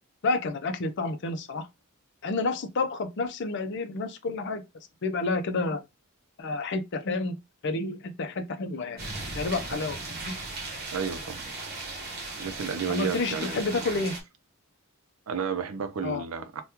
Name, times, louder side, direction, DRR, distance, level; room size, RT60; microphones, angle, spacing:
voice 1, 0.2-1.7 2.2-4.6 5.0-5.8 6.4-7.4 7.6-9.1 9.3-10.4 12.9-14.1 16.0-16.2, left 3 dB, 55° left, 0.5 m, -30 dB
sound 1, 9.0-14.2, right 3 dB, 45° right, 0.9 m, -37 dB
voice 2, 10.9-11.5 12.4-13.6 15.3-16.6, right 6 dB, 70° right, 0.5 m, -32 dB
2.9 x 2.2 x 3.4 m
head